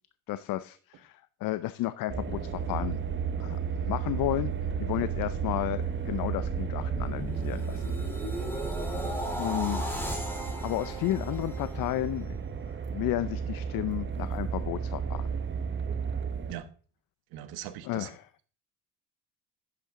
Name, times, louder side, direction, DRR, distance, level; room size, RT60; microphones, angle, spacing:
voice 1, 0.3-3.0 3.4-4.5 4.8-7.9 9.4-9.8 10.4-12.4 12.9-15.3 17.8-18.3, left 15 dB, 65° left, 14 dB, 0.6 m, -32 dB
sound 1, 2.1-16.5, right 6 dB, 30° right, 1.3 m, -33 dB
sound 2, 6.6-12.4 12.8-13.1, equal, 5° left, 2.8 m, -38 dB
voice 2, 17.3-18.1, right 12 dB, 75° right, 11 dB, 1.3 m, -40 dB
10.5 x 8.5 x 3.7 m, 0.40 s
supercardioid pair, 90°, 37 cm